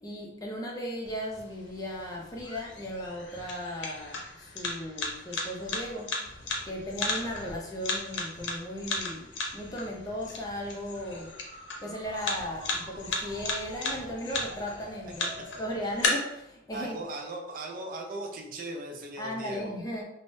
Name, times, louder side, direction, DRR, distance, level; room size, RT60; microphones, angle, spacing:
voice 1, 0.0-11.3 11.8-15.3 15.6-17.0 19.2-20.0, equal, 20° left, -1 dB, 0.5 m, -36 dB
sound 1, 1.1-16.1, left 3 dB, 75° left, 0.6 m, -36 dB
sound 2, 10.9-15.9, right 1 dB, 75° right, 0.8 m, -49 dB
voice 2, 16.7-19.8, right 2 dB, 50° right, 1 dB, 0.5 m, -38 dB
3.6 x 2.0 x 2.5 m, 0.83 s
head